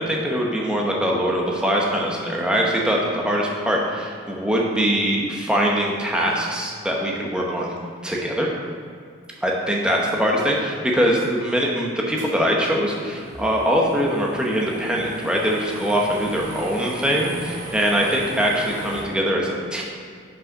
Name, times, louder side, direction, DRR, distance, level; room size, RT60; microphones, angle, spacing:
voice 1, 0.0-7.7 8.0-8.5 9.4-19.8, equal, 5° right, -2 dB, 0.9 m, -22 dB
sound 1, 12.2-19.0, right 2 dB, 80° right, 1.5 m, -37 dB
6.2 x 5.5 x 5.4 m, 2.2 s
head